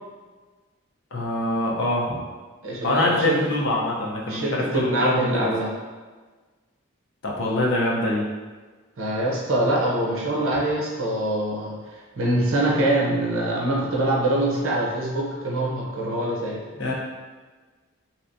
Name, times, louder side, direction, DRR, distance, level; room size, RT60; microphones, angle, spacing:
voice 1, 1.1-2.2 2.8-5.5 7.2-8.2 16.8-16.9, left 1 dB, 60° left, -3 dB, 0.7 m, -24 dB
voice 2, 2.6-3.4 4.3-5.7 9.0-16.6, right 1 dB, 75° right, -4 dB, 0.7 m, -24 dB
3.2 x 2.9 x 2.6 m, 1.4 s
head